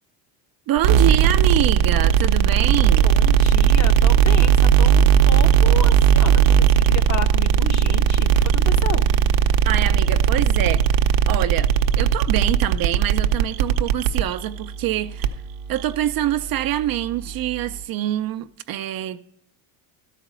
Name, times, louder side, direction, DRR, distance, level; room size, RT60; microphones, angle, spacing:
voice 1, 0.7-3.1 9.6-10.8 11.3-11.7 12.0-15.4 15.7-19.2, right 12 dB, 50° right, 0.5 m, -25 dB
sound 1, 0.8-17.8, right 8 dB, 85° right, 0.8 m, -18 dB
voice 2, 3.0-9.0, left 5 dB, 35° left, 1.0 m, -32 dB
12.0 x 5.0 x 7.4 m
cardioid pair, 105°, 48 cm